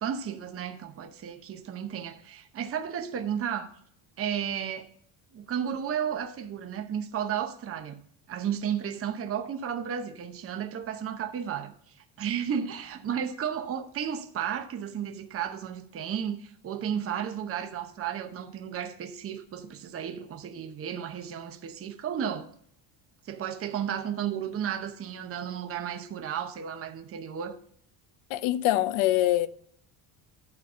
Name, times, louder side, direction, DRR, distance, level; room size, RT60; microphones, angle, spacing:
voice 1, 0.0-3.7 4.2-4.9 5.3-8.0 8.3-11.7 12.2-22.5 23.2-27.6, right 8 dB, 30° right, 0.8 m, -33 dB
voice 2, 28.3-29.5, left 15 dB, 85° left, 0.7 m, -24 dB
12.0 x 4.1 x 6.5 m
cardioid pair, 145°, 45 cm